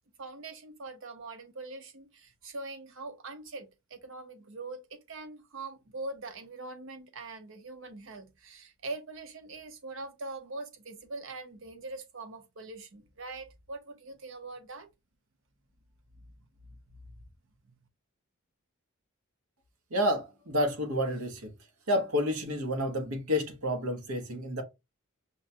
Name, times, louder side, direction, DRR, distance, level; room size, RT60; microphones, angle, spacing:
voice 1, 0.2-14.9 16.2-16.3 17.0-17.1, right 3 dB, 65° right, 0.8 m, -43 dB
voice 2, 19.9-21.5 21.9-24.6, equal, 90° right, 1.1 m, -29 dB
5.4 x 2.2 x 2.7 m
head